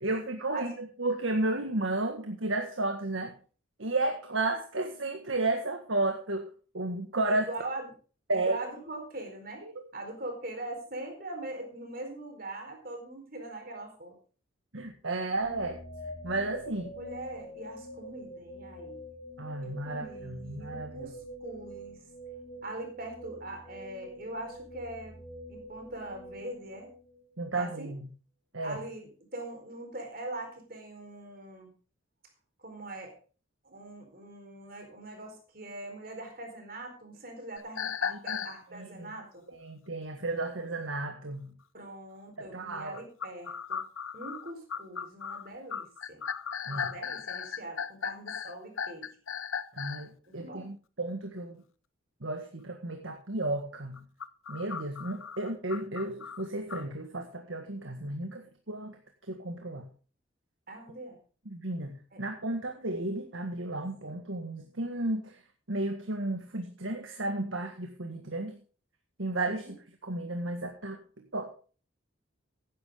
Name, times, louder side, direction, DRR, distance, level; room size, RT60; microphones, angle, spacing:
voice 1, 0.0-3.3 3.8-7.4 8.3-8.6 9.6-9.7 14.7-15.8 16.2-16.9 19.4-21.1 27.4-28.1 28.5-28.8 38.3-38.4 38.7-39.1 39.5-41.6 42.4-43.0 46.7-46.9 49.7-51.6 52.2-54.0 54.5-59.0 59.3-59.9 61.5-65.4 65.7-68.6 69.2-69.8 70.0-71.0 71.3-71.5, right 2 dB, 75° right, 4 dB, 1.8 m, -33 dB
voice 2, 7.3-7.9 8.3-14.1 16.9-19.0 19.6-22.0 22.6-25.1 25.5-26.9 27.5-27.9 28.6-31.7 32.6-33.1 33.6-39.4 41.7-43.8 44.1-46.2 46.6-49.1 50.4-50.7 60.7-61.2 62.1-62.2 69.5-69.7, right 2 dB, 45° right, 4 dB, 4.4 m, -42 dB
sound 1, 15.4-27.4, equal, 45° left, 6.6 m, -45 dB
sound 2, 37.6-38.6 42.9-50.1 53.9-56.8, left 7 dB, 80° left, 0.8 m, -36 dB
15.5 x 11.0 x 3.7 m, 0.38 s
head